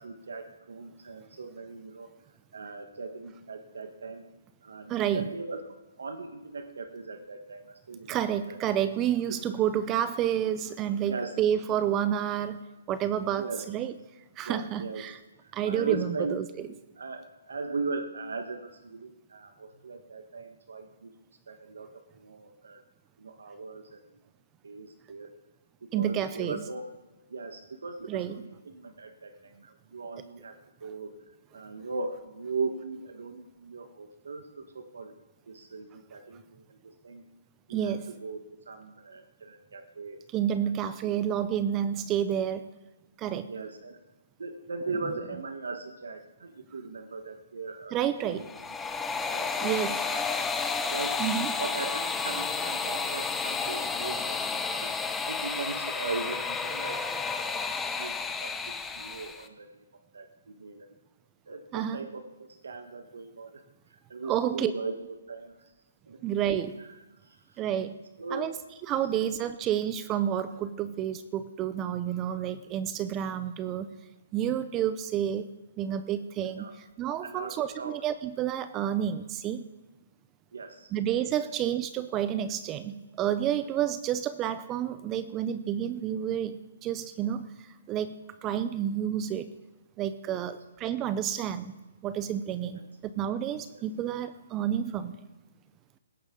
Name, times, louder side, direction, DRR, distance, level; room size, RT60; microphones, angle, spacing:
voice 1, 0.0-2.1 2.5-4.2 4.6-8.6 11.1-11.3 13.4-13.6 14.4-15.0 15.4-16.6 17.0-21.1 21.5-22.8 23.2-24.1 24.6-25.4 25.8-26.9 27.3-35.1 35.5-37.2 37.7-40.2 40.6-41.2 43.5-44.0 44.4-48.0 48.2-48.4 49.3-50.2 50.9-51.2 51.6-54.9 55.3-59.9 60.1-60.9 61.5-63.6 63.9-65.7 66.1-66.2 66.8-66.9 67.2-67.7 68.2-68.5 69.0-69.1 76.5-76.7 77.2-78.0 80.5-80.9 90.3-90.5 92.7-92.8 93.7-93.8, right 3 dB, 80° right, 7 dB, 1.4 m, -39 dB
voice 2, 4.9-5.2 8.1-12.6 12.9-13.9 14.4-15.2 15.5-16.5 25.9-26.6 28.1-28.4 37.7-38.0 40.3-42.6 43.2-43.5 47.9-48.4 49.6-49.9 51.2-51.5 61.7-62.1 64.2-64.7 66.2-66.7 67.6-67.9 68.3-68.6 68.9-73.9 74.3-75.4 75.8-76.7 77.0-79.6 80.9-87.4 87.9-88.1 88.4-89.5 90.0-91.7 92.0-92.8 93.2-95.1, right 10 dB, 20° right, 13 dB, 0.6 m, -29 dB
sound 1, 48.3-59.5, left 5 dB, 10° left, 0.9 m, -31 dB
17.0 x 15.0 x 3.8 m, 1.1 s
hypercardioid pair, 155°, 0 cm